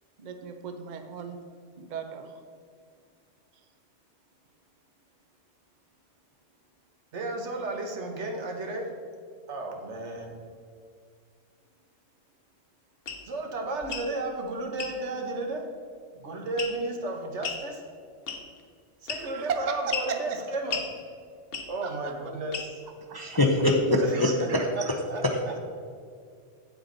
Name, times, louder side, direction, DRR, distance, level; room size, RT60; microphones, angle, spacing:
voice 1, 0.2-1.4 1.8-2.4 19.3-20.4 21.8-22.1 23.1-23.2, right 6 dB, 45° right, 5 dB, 0.7 m, -35 dB
voice 2, 7.1-8.8 9.5-10.3 13.3-15.6 16.1-17.8 19.0-20.8 21.7-22.7 24.0-25.5, right 2 dB, 70° right, 2 dB, 1.5 m, -33 dB
sound 1, 13.1-13.2 13.8-14.1 14.8-15.0 16.6-16.9 17.4-17.6 18.3-18.6 19.1-19.4 19.9-20.1 20.7-20.9 21.5-21.8 22.5-22.7 23.6-24.0, left 5 dB, 55° left, 1.1 m, -34 dB
voice 3, 23.1-24.6, left 1 dB, 25° left, 1 dB, 0.5 m, -23 dB
9.1 x 7.8 x 3.9 m, 2.2 s
omnidirectional pair, 1.3 m